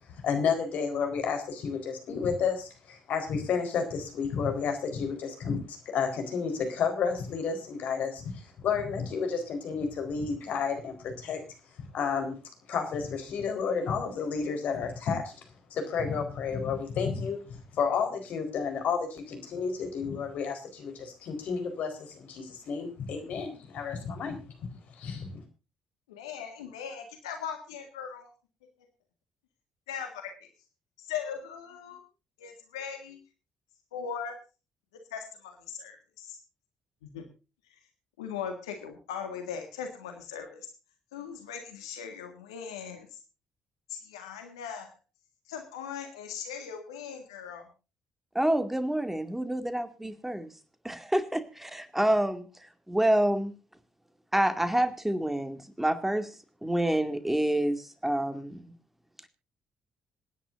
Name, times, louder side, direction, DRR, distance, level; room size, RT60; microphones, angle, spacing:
voice 1, 0.1-11.4 11.9-12.4 12.7-15.4 15.7-24.4 24.9-25.4, left 6 dB, 65° left, 4.2 m, -31 dB
voice 2, 26.1-28.3 29.9-30.5 31.0-32.0 32.4-33.2 33.9-34.4 35.1-36.4 37.0-37.2 38.2-40.7 41.1-43.2 43.9-44.9 45.5-47.7, left 7 dB, 85° left, 1.7 m, -39 dB
voice 3, 48.3-50.5 50.8-52.5 52.9-53.5 54.3-56.3 56.6-58.7, right 1 dB, 10° right, 2.3 m, -27 dB
26.5 x 10.0 x 2.6 m
hypercardioid pair, 45°, 3 cm